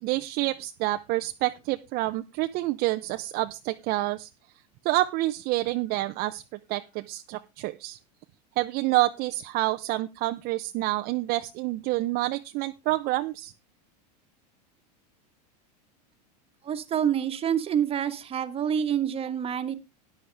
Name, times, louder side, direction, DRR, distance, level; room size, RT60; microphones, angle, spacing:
voice 1, 0.0-4.3 4.8-6.4 6.7-8.0 8.6-13.5, right 18 dB, 45° right, 8 dB, 0.7 m, -28 dB
voice 2, 16.6-19.8, right 9 dB, 25° right, 9 dB, 1.4 m, -27 dB
13.0 x 10.0 x 3.4 m, 0.26 s
supercardioid pair, 120°, 21 cm